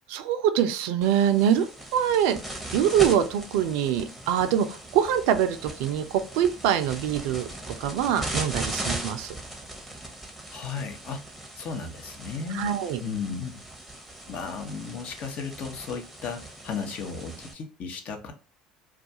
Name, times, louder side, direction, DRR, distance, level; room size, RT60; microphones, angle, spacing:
voice 1, 0.1-1.7 1.9-2.4 2.7-9.3 12.5-13.0, right 9 dB, 70° right, 9 dB, 0.4 m, -24 dB
sound 1, 1.0-17.5, right 1 dB, ahead, 0.7 m, -38 dB
voice 2, 10.5-11.2 11.6-12.7 13.0-13.5 14.3-18.3, left 5 dB, 50° left, 5 dB, 0.7 m, -35 dB
2.3 x 2.3 x 2.7 m, 0.36 s
hypercardioid pair, 70°, 3 cm